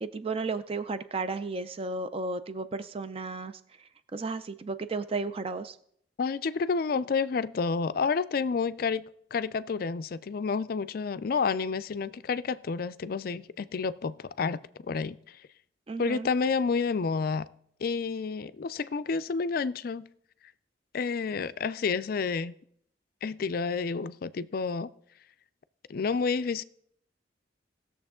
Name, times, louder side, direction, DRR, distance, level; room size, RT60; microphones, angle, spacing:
voice 1, 0.0-5.8 15.9-16.3, right 3 dB, 30° right, 0.4 m, -34 dB
voice 2, 6.2-9.1 9.3-15.4 16.0-17.5 17.8-20.1 20.9-22.5 23.2-24.9 25.9-26.6, left 5 dB, 50° left, 0.4 m, -30 dB
17.0 x 6.9 x 3.6 m
head